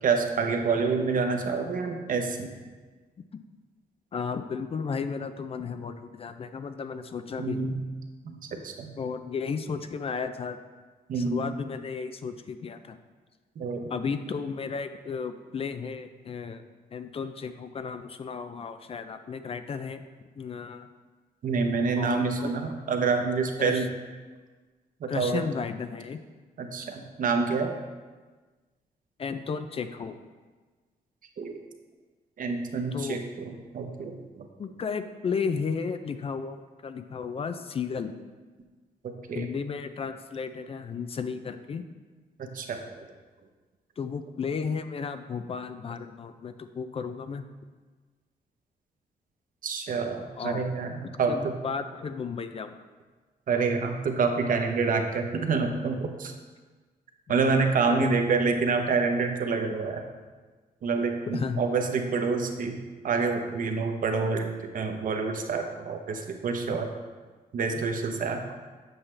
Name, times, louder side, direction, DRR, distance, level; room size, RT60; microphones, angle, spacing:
voice 1, 0.0-2.5 7.4-7.8 8.2-8.9 11.1-11.5 13.6-13.8 21.4-23.9 25.0-25.4 26.6-27.7 31.4-31.6 32.4-34.5 39.3-39.5 42.4-42.8 49.6-51.6 53.5-56.3 57.3-60.0 60.8-62.8 63.0-66.9 67.5-68.4, right 4 dB, 60° right, 4 dB, 0.8 m, -27 dB
voice 2, 4.1-7.7 9.0-10.6 11.2-13.0 13.9-16.6 16.9-20.0 20.4-20.9 22.0-22.2 23.6-23.9 25.1-26.2 29.2-30.2 32.9-33.2 34.6-38.1 39.3-41.9 44.0-47.4 50.4-50.7 51.3-52.7 57.9-58.1 61.3-61.6 67.7-67.8, left 5 dB, 40° left, 9 dB, 0.4 m, -33 dB
7.8 x 5.8 x 3.2 m, 1.4 s
cardioid pair, 105°, 16 cm